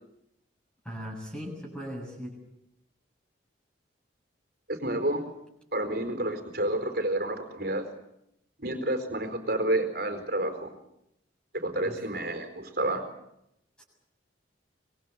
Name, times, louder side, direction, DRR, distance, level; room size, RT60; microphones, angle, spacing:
voice 1, 0.8-2.3 11.8-12.0 13.8-13.9, equal, 5° left, -2 dB, 7.3 m, -38 dB
voice 2, 4.7-5.2 5.7-7.9 8.6-10.7 11.5-13.0, right 1 dB, 55° right, 7 dB, 4.3 m, -29 dB
25.5 x 22.0 x 8.1 m, 0.80 s
head